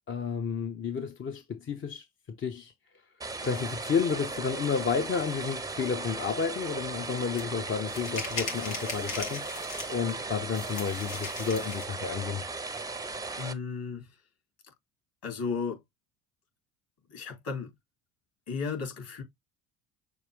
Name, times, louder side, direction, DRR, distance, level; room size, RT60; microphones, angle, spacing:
voice 1, 0.1-2.7 3.4-9.4 9.9-12.4, left 6 dB, 25° left, 0.7 m, -31 dB
sound 1, 3.2-13.5, right 3 dB, 10° right, 0.6 m, -37 dB
sound 2, 7.4-7.5 7.9-10.1 10.5-11.9, left 4 dB, 90° left, 1.5 m, -38 dB
voice 2, 13.4-14.1 15.2-15.8 17.1-17.7 18.5-19.2, left 5 dB, 50° left, 3.0 m, -34 dB
6.4 x 2.3 x 3.5 m
hypercardioid pair, 65°, 45 cm